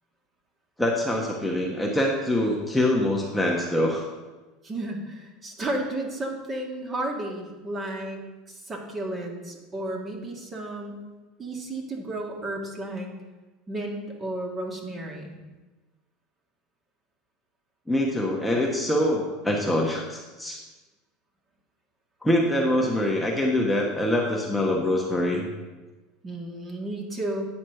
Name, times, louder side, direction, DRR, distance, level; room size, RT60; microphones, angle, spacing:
voice 1, 0.8-4.0 17.9-20.6 22.2-25.5, left 1 dB, 5° left, -2 dB, 1.2 m, -24 dB
voice 2, 4.6-8.2 8.5-11.0 11.4-13.1 13.7-15.3 26.2-27.5, right 1 dB, 25° right, 0 dB, 1.9 m, -33 dB
9.2 x 4.3 x 6.4 m, 1.2 s
hypercardioid pair, 90°, 0 cm